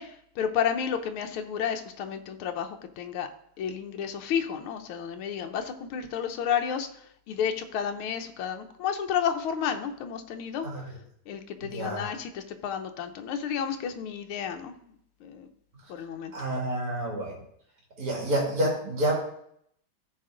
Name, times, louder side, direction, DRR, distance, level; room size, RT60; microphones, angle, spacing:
voice 1, 0.0-3.3 3.6-10.9 11.3-14.7 15.2-15.5 15.9-16.6, left 8 dB, 80° left, 6 dB, 1.6 m, -31 dB
voice 2, 11.6-12.0 16.3-17.4 18.0-19.1, right 1 dB, 45° right, -2 dB, 2.7 m, -28 dB
13.5 x 4.8 x 3.8 m, 0.69 s
omnidirectional pair, 2.3 m